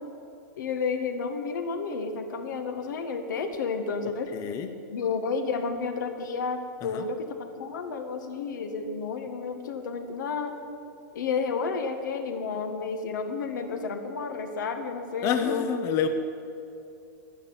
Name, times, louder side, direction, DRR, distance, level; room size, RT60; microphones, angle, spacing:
voice 1, 0.6-4.3 4.9-10.5 11.1-15.7, left 5 dB, 80° left, 6 dB, 1.8 m, -31 dB
voice 2, 4.3-4.7 6.8-7.1 15.2-16.1, left 8 dB, 30° left, 8 dB, 0.6 m, -28 dB
11.5 x 9.8 x 9.7 m, 2.7 s
supercardioid pair, 155°, 10 cm